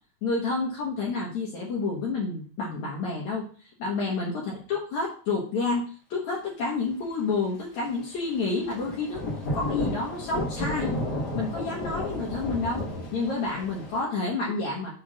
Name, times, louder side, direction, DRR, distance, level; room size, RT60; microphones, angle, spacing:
voice 1, 0.2-3.5 3.8-5.8 6.1-9.3 9.5-10.9 11.3-12.9 13.1-14.9, left 3 dB, 60° left, -4 dB, 2.4 m, -29 dB
Thunder / Rain, 8.5-14.0, left 1 dB, 40° left, 1.6 m, -32 dB
6.7 x 3.5 x 6.0 m, 0.42 s
omnidirectional pair, 4.1 m